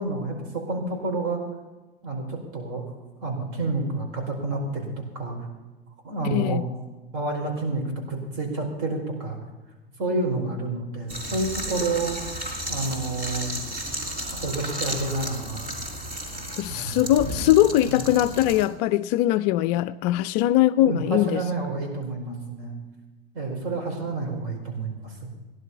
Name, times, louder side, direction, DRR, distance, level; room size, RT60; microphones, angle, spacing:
voice 1, 0.0-1.4 2.0-2.9 3.2-4.9 5.1-5.4 6.0-6.6 7.1-9.4 10.0-12.1 12.7-13.5 14.3-15.7 16.7-17.0 17.9-18.0 20.8-22.7 23.3-25.3, right 2 dB, 50° right, 4.8 m, -29 dB
voice 2, 6.2-6.6 16.6-21.4, left 14 dB, 45° left, 0.4 m, -21 dB
sound 1, 11.1-18.7, equal, 30° right, 4.2 m, -33 dB
16.5 x 11.0 x 5.6 m
figure-of-eight pair, 90°, 31 cm